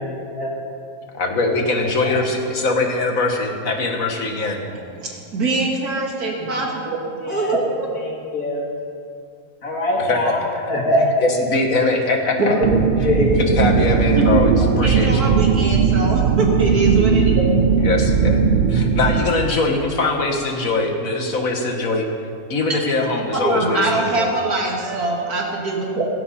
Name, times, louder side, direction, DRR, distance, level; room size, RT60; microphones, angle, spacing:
voice 1, 0.2-0.5 2.0-2.2 6.6-6.7 7.2-7.6 7.9-8.6 9.6-10.4 10.7-11.2 13.0-13.3, left 1 dB, 80° left, -2 dB, 3.1 m, -22 dB
voice 2, 1.1-4.6 10.0-10.2 10.6-10.7 11.2-12.6 13.0-15.3 17.8-18.4 18.7-22.1 22.5-24.3, left 2 dB, 65° left, 3 dB, 2.0 m, -22 dB
voice 3, 4.7-7.0 7.3-7.9 12.4-12.6 14.2-17.5 23.4-26.1, right 2 dB, 85° right, -1 dB, 2.7 m, -23 dB
sound 1, 12.6-19.2, right 6 dB, 50° right, 0.6 m, -17 dB
16.5 x 15.5 x 4.3 m, 2.4 s
omnidirectional pair, 1.6 m